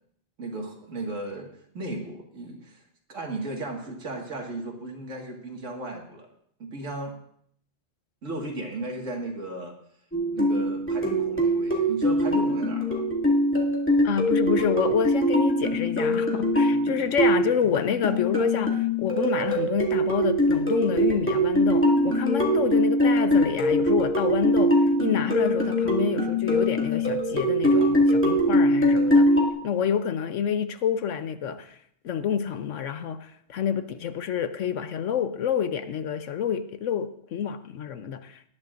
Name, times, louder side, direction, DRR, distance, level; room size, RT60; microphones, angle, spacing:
voice 1, 0.4-1.5 1.7-2.8 3.1-6.3 6.6-7.1 8.2-9.7 10.3-13.1, right 2 dB, 90° right, 2.3 m, -35 dB
sound 1, 10.1-29.5, equal, 10° left, 2.2 m, -23 dB
voice 2, 14.0-29.3 29.6-31.8 32.0-38.5, left 7 dB, 75° left, 1.1 m, -28 dB
19.5 x 10.5 x 2.6 m
omnidirectional pair, 1.3 m